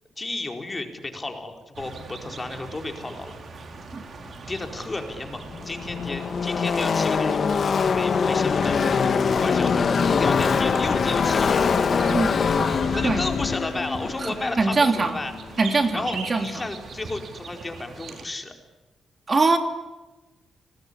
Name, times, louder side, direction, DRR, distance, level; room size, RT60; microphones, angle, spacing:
voice 1, 0.2-3.4 4.5-7.4 7.9-8.8 9.3-11.6 12.9-15.3 15.9-18.5, left 2 dB, 25° left, 5 dB, 4.5 m, -33 dB
sound 1, 1.7-18.2, right 3 dB, 55° right, 4.1 m, -43 dB
Car passing by / Race car auto racing, 4.7-4.8 5.0-15.6, left 5 dB, 55° left, 1.9 m, -23 dB
sound 2, 8.6-8.9 10.4-10.8 12.6-13.4 15.6-15.8 16.1-16.4 18.1-18.2, right 5 dB, 75° right, 7.7 m, -37 dB
voice 2, 14.2-15.1 15.6-16.6 19.3-19.6, right 3 dB, 35° right, 6 dB, 3.0 m, -22 dB
29.0 x 20.5 x 9.9 m, 1.1 s
cardioid pair, 85°, 0 cm